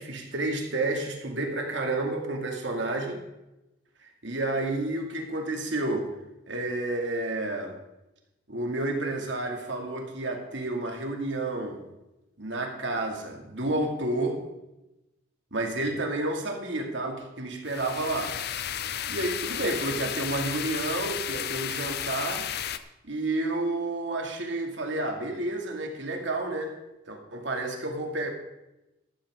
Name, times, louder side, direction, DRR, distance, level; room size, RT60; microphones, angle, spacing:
voice 1, 0.0-3.2 4.2-6.1 6.5-7.7 8.5-11.8 12.4-14.4 15.5-18.3 19.1-22.5 23.0-26.7 27.1-28.3, right 2 dB, 65° right, 2 dB, 2.4 m, -30 dB
sound 1, 17.7-22.8, left 9 dB, 50° left, 0.6 m, -33 dB
13.0 x 13.0 x 3.7 m, 0.94 s
head